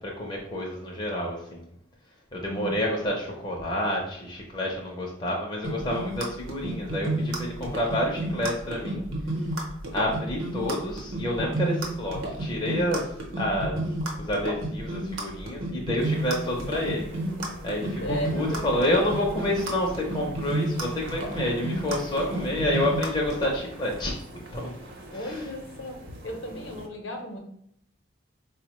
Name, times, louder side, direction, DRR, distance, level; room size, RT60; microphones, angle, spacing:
voice 1, 0.0-1.6 2.3-9.0 9.9-13.8 14.2-17.1 17.6-24.2 24.5-24.7 25.1-25.4, left 1 dB, 20° left, -2 dB, 0.4 m, -29 dB
voice 2, 2.4-2.8 18.0-18.9 25.1-26.0 26.2-27.4, equal, 65° left, 2 dB, 0.7 m, -35 dB
sound 1, 5.6-23.5, right 1 dB, 90° right, 0.8 m, -30 dB
sound 2, 16.0-26.9, right 1 dB, 50° right, 0.5 m, -44 dB
4.1 x 2.1 x 2.9 m, 0.73 s
head